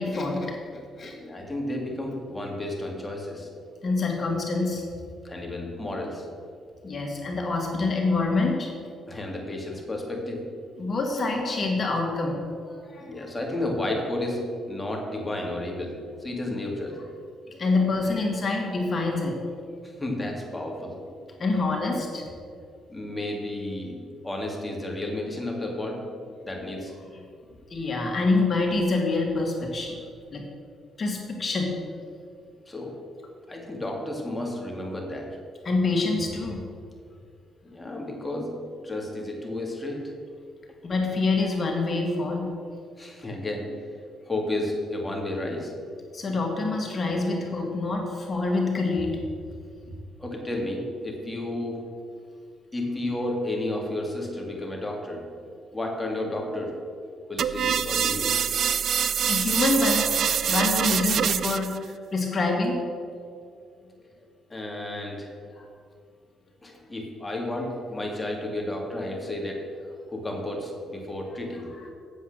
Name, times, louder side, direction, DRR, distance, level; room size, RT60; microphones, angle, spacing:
voice 1, 0.0-1.2 3.8-4.9 6.8-8.7 10.8-13.3 17.5-19.4 21.4-22.2 27.7-30.0 30.3-30.5 31.0-31.7 35.6-36.6 40.8-42.5 46.1-49.2 59.3-60.1 60.5-62.8 65.6-65.7 71.8-71.9, left 3 dB, 40° left, 1 dB, 2.0 m, -26 dB
voice 2, 1.1-3.5 5.2-6.3 9.1-10.5 13.0-17.0 19.8-21.0 22.9-26.1 26.4-26.9 32.7-33.0 33.5-35.4 37.6-40.1 43.0-43.8 44.3-45.8 50.2-51.8 52.7-55.3 55.7-56.8 57.3-58.4 64.0-64.1 64.5-65.3 66.6-71.9, left 1 dB, 15° left, 1 dB, 2.1 m, -32 dB
sound 1, 57.4-61.8, right 8 dB, 60° right, 0.4 m, -25 dB
8.3 x 7.7 x 6.6 m, 2.3 s
cardioid pair, 90°, 0 cm